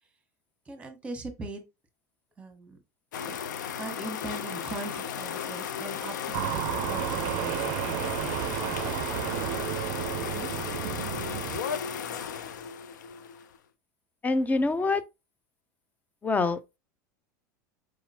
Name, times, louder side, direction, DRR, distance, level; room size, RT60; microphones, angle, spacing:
voice 1, 0.7-1.6 2.4-2.8 3.3-3.4 3.8-9.0, right 3 dB, 15° right, 1.3 m, -41 dB
sound 1, 3.1-13.6, left 8 dB, 85° left, 0.4 m, -35 dB
sound 2, 6.3-11.6, right 12 dB, 60° right, 0.4 m, -32 dB
voice 2, 14.2-15.0 16.2-16.8, left 3 dB, 15° left, 0.5 m, -26 dB
4.7 x 2.8 x 2.8 m
hypercardioid pair, 100°, 10 cm